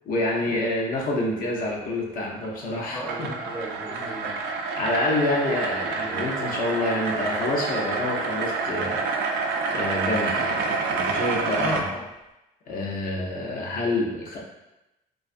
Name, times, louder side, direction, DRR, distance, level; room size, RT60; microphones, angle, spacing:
voice 1, 0.1-3.3 4.7-9.0 9.7-11.9 12.7-14.4, left 2 dB, 55° left, -2 dB, 0.6 m, -27 dB
sound 1, 2.3-11.8, right 4 dB, 75° right, 0.4 m, -28 dB
voice 2, 2.9-4.4 11.6-12.0, left 1 dB, 5° left, -3 dB, 0.4 m, -34 dB
2.3 x 2.3 x 2.5 m, 0.94 s
cardioid pair, 110°, 17 cm